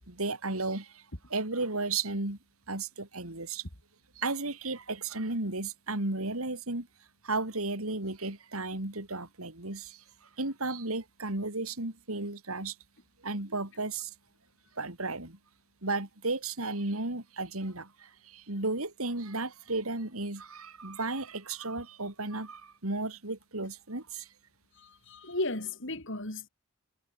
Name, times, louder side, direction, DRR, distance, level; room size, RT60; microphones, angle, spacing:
voice 1, 0.1-1.0 1.3-2.4 2.7-3.6 4.2-6.9 7.2-10.0 10.4-12.8 13.2-14.1 14.8-15.4 15.8-24.3, right 3 dB, 75° right, 3.7 m, -34 dB
voice 2, 24.7-26.5, left 2 dB, 60° left, 5.5 m, -35 dB
head